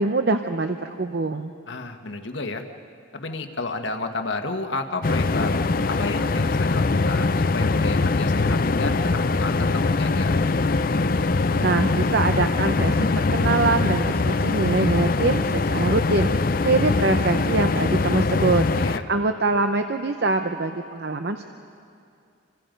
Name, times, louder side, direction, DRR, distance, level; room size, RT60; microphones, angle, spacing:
voice 1, 0.0-1.5 11.5-18.6 19.1-21.4, right 3 dB, 55° right, 7 dB, 0.7 m, -24 dB
voice 2, 1.7-2.6 3.1-10.3 18.7-19.0, left 3 dB, 70° left, 5 dB, 1.6 m, -31 dB
sound 1, 5.0-19.0, left 3 dB, 45° left, 0.5 m, -22 dB
28.5 x 25.0 x 5.3 m, 2.4 s
head